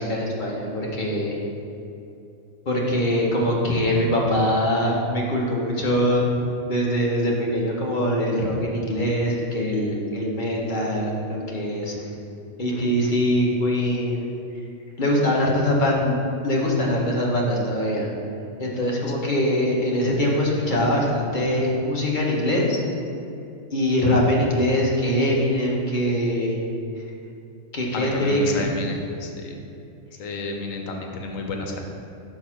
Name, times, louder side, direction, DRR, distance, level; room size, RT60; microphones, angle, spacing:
voice 1, 0.0-1.4 2.6-6.3 6.7-12.0 12.6-14.3 15.0-16.1 16.4-18.1 18.6-22.8 23.7-26.6 27.7-28.6, equal, 40° left, -3 dB, 1.1 m, -23 dB
voice 2, 27.9-29.6 30.2-31.8, left 3 dB, 85° left, 2 dB, 1.2 m, -31 dB
4.7 x 4.6 x 5.9 m, 2.7 s
omnidirectional pair, 1.3 m